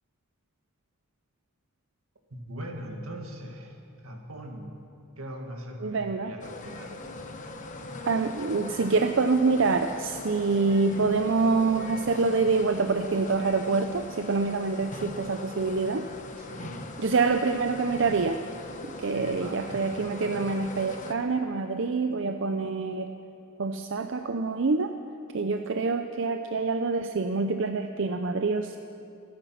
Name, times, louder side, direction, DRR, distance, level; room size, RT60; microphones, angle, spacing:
voice 1, 2.3-3.8 4.0-4.8 5.2-7.1 16.4-16.9 19.1-19.8, equal, 85° right, 2 dB, 2.1 m, -40 dB
voice 2, 5.8-6.3 8.1-16.1 17.0-18.4 18.8-23.1 23.6-24.9 25.3-28.8, right 4 dB, 60° right, 7 dB, 0.6 m, -26 dB
sound 1, 6.4-21.1, left 2 dB, 35° left, 1.1 m, -41 dB
25.5 x 9.5 x 5.9 m, 2.7 s
head